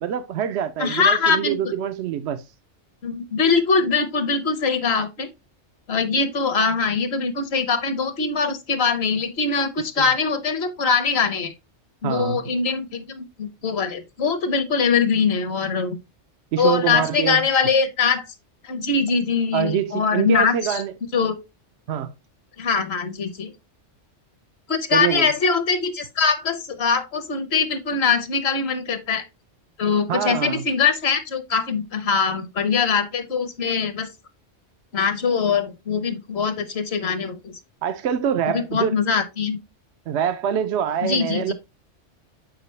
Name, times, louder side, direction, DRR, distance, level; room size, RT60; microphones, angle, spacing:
voice 1, 0.0-2.4 9.8-10.1 12.0-12.5 16.5-17.4 19.5-20.9 21.9-22.1 24.9-25.3 30.1-30.6 37.8-38.9 40.1-41.5, right 9 dB, 70° right, 0.8 m, -25 dB
voice 2, 0.8-1.6 3.0-5.3 5.9-11.5 12.0-16.0 16.6-18.2 18.6-20.8 21.1-21.3 22.6-23.5 24.7-29.2 29.8-34.1 34.9-37.5 38.5-39.6 41.0-41.5, left 5 dB, 60° left, 1.2 m, -22 dB
7.4 x 4.8 x 3.1 m
omnidirectional pair, 1.2 m